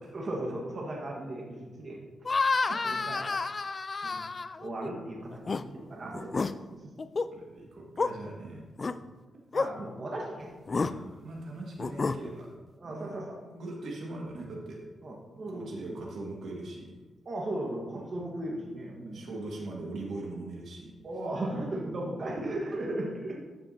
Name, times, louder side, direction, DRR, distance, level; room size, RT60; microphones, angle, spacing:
voice 1, 0.1-2.0 2.8-3.4 4.0-4.2 4.6-6.9 8.8-9.0 9.5-10.5 12.8-13.4 15.0-16.0 17.2-19.3 21.0-23.3, right 1 dB, 50° right, -2 dB, 1.4 m, -37 dB
sound 1, 2.2-4.9 5.3-5.6 6.1-6.5 7.0-7.3 8.0-8.1 8.8-8.9 9.5-9.7 10.7-10.9 11.8-12.2, left 4 dB, 40° left, 0.3 m, -29 dB
voice 2, 7.3-8.7 10.8-12.5 12.8-14.8 15.5-17.0 17.9-18.1 19.0-20.9, right 2 dB, 75° right, -2 dB, 1.7 m, -40 dB
13.0 x 5.7 x 2.8 m, 1.3 s
cardioid pair, 75°, 0 cm